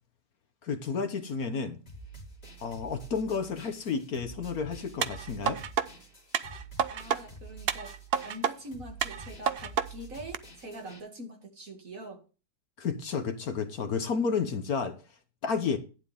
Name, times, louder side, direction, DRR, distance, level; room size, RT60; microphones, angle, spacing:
voice 1, 0.6-1.8 2.6-5.6 12.8-15.0 15.4-15.8, left 5 dB, 60° left, 1.5 m, -31 dB
sound 1, 1.9-11.0, right 3 dB, 35° left, 2.7 m, -48 dB
sound 2, 5.0-5.9 6.3-7.2 7.7-8.5 9.0-9.9 10.3-10.4, right 7 dB, 85° right, 0.5 m, -29 dB
voice 2, 6.9-7.9 8.2-12.2, right 1 dB, 50° right, 2.7 m, -44 dB
11.5 x 9.6 x 3.5 m
omnidirectional pair, 1.9 m